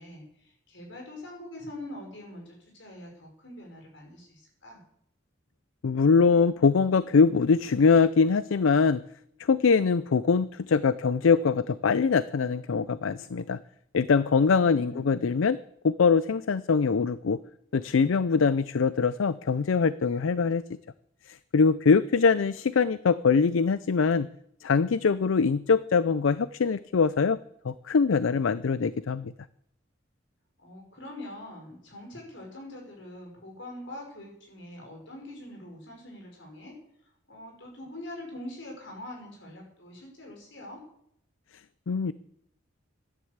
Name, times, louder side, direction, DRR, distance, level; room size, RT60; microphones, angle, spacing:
voice 1, 0.0-4.8 14.5-15.3 30.6-36.7 37.3-40.8, left 1 dB, 65° left, 0 dB, 5.4 m, -44 dB
voice 2, 5.8-9.0 9.5-13.6 13.9-15.6 15.8-17.4 17.7-20.6 21.5-24.3 24.6-27.4 27.6-29.3 41.9-42.1, left 5 dB, 85° left, 16 dB, 0.5 m, -23 dB
13.0 x 11.0 x 8.0 m, 0.73 s
head